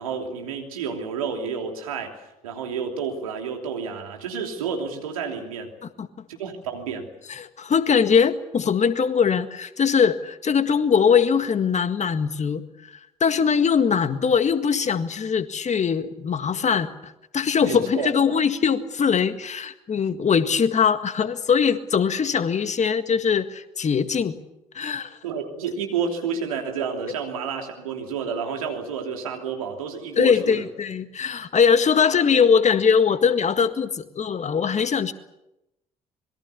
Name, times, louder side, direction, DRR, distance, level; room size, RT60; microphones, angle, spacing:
voice 1, 0.0-5.7 6.3-7.1 17.6-18.1 25.2-30.7, right 6 dB, 85° right, 3 dB, 3.1 m, -30 dB
voice 2, 7.3-12.9 13.2-24.3 24.7-25.2 30.2-35.1, left 6 dB, 40° left, 10 dB, 1.9 m, -21 dB
26.0 x 22.0 x 7.1 m, 0.91 s
hypercardioid pair, 50°, 18 cm